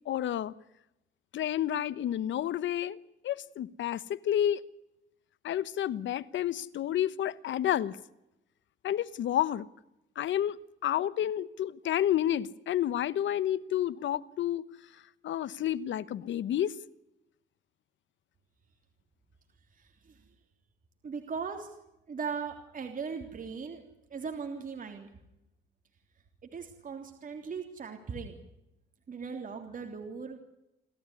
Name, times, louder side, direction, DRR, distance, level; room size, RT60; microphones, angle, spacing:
voice 1, 0.1-0.5 1.3-3.0 3.2-4.6 5.4-8.0 8.8-9.7 10.2-10.6 10.8-14.6 15.2-16.7, left 11 dB, 70° left, 1.1 m, -30 dB
voice 2, 19.8-20.2 21.0-21.7 22.1-23.8 24.1-25.1 26.5-28.4 29.1-30.4, right 5 dB, 45° right, 3.4 m, -39 dB
29.0 x 13.5 x 9.8 m
cardioid pair, 90°, 20 cm